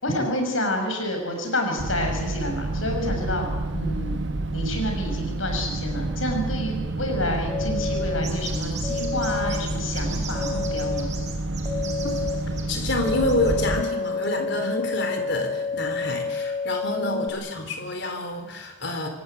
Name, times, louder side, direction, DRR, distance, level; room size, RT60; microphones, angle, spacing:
voice 1, 0.0-4.2 4.5-11.1 14.5-14.8 16.8-17.3, left 1 dB, 85° left, 4 dB, 6.2 m, -29 dB
sound 1, 1.8-13.8, right 2 dB, 65° right, 1.2 m, -29 dB
sound 2, 7.5-8.2 8.8-9.6 10.3-11.0 11.6-12.3 13.0-17.3, left 4 dB, 15° left, 3.5 m, -29 dB
sound 3, 8.2-14.3, right 6 dB, 35° right, 6.2 m, -39 dB
voice 2, 12.7-19.1, left 1 dB, 60° left, 5 dB, 4.0 m, -28 dB
26.0 x 18.0 x 8.2 m, 1.1 s
head